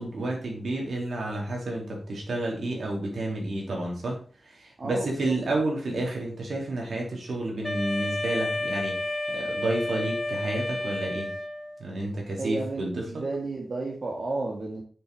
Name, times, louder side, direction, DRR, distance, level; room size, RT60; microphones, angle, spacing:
voice 1, 0.0-11.3 11.8-13.2, right 2 dB, 80° right, -1 dB, 3.3 m, -30 dB
voice 2, 4.8-5.6 12.4-14.8, right 3 dB, 55° right, -1 dB, 2.1 m, -32 dB
Wind instrument woodwind instrument, 7.6-11.8, left 2 dB, 15° left, 1.1 m, -31 dB
6.8 x 6.7 x 5.4 m, 0.41 s
wide cardioid pair, 110°, 0 cm